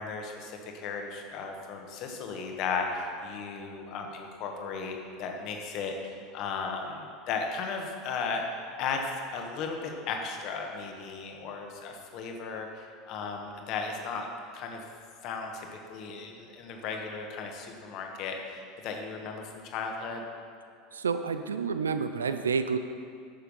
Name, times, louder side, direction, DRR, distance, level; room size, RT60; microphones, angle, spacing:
voice 1, 0.0-8.4 8.8-14.3 14.5-14.8 15.2-20.2, left 5 dB, 50° left, 2 dB, 1.5 m, -35 dB
voice 2, 20.9-22.8, right 5 dB, 80° right, 10 dB, 0.4 m, -29 dB
11.0 x 6.7 x 5.5 m, 2.3 s
figure-of-eight pair, 75°, 0 cm